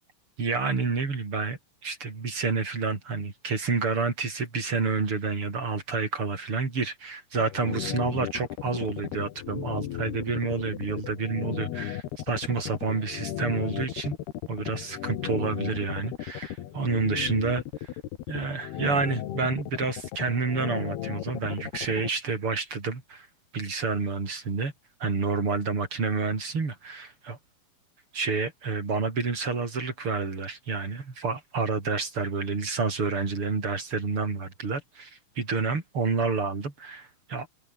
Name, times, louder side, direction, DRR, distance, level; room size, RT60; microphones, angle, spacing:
voice 1, 0.4-14.1 14.5-17.9 18.3-23.3 23.5-24.7 25.0-27.4 28.1-37.5, right 4 dB, 35° right, 4.8 m, -29 dB
sound 1, 7.4-22.1, left 12 dB, 85° left, 3.6 m, -35 dB
omnidirectional pair, 4.5 m